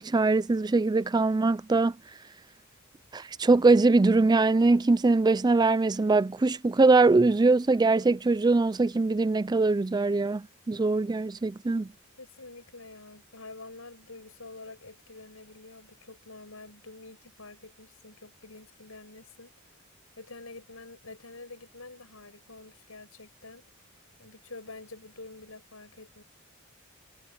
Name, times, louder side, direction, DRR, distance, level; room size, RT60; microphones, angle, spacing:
voice 1, 0.0-1.9 3.1-11.9, right 3 dB, 20° right, 0.4 m, -22 dB
voice 2, 12.2-19.5 20.2-23.6 24.2-26.2, left 3 dB, 85° left, 6.5 m, -47 dB
head